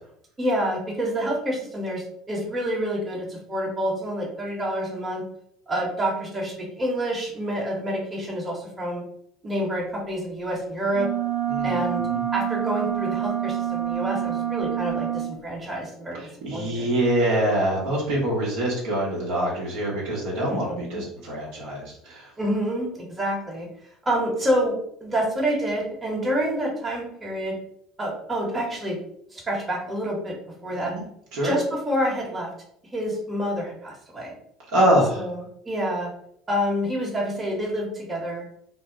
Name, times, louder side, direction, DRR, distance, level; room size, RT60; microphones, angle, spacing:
voice 1, 0.4-5.2 5.7-9.0 9.4-11.1 11.6-12.0 12.3-16.2 16.5-16.9 20.5-21.0 22.4-23.7 24.0-27.6 28.0-29.0 29.3-30.4 30.6-30.9 31.4-32.5 32.9-34.3 35.2-36.1 36.5-38.4, equal, 20° right, -2 dB, 1.0 m, -28 dB
sound 1, 10.9-15.3, right 9 dB, 50° left, 0.7 m, -27 dB
voice 2, 11.5-12.2 16.4-22.3 30.7-31.0 31.3-31.5 34.7-35.2, right 1 dB, 65° right, -4 dB, 0.9 m, -24 dB
2.1 x 2.0 x 3.7 m, 0.71 s
hypercardioid pair, 65°, 0 cm